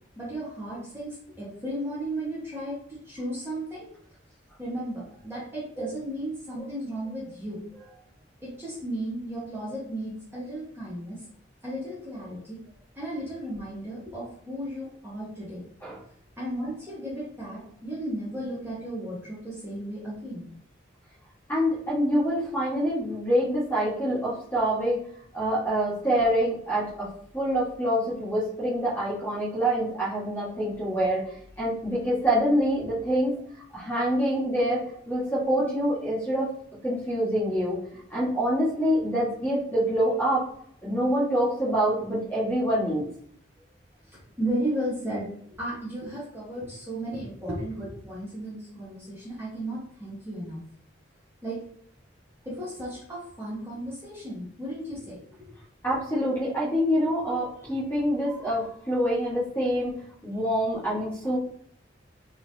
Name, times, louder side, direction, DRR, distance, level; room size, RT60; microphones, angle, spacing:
voice 1, 0.2-3.9 4.6-7.6 8.4-11.2 11.6-12.6 12.9-15.6 16.4-20.5 44.1-50.6 51.4-51.6 52.4-55.4, right 1 dB, 15° right, -8 dB, 1.4 m, -34 dB
voice 2, 21.5-25.0 25.3-31.2 31.6-33.4 33.7-36.5 36.8-40.4 40.8-43.0 55.8-59.9 60.2-61.4, equal, 10° left, -8 dB, 1.6 m, -26 dB
4.1 x 3.3 x 2.8 m, 0.64 s
head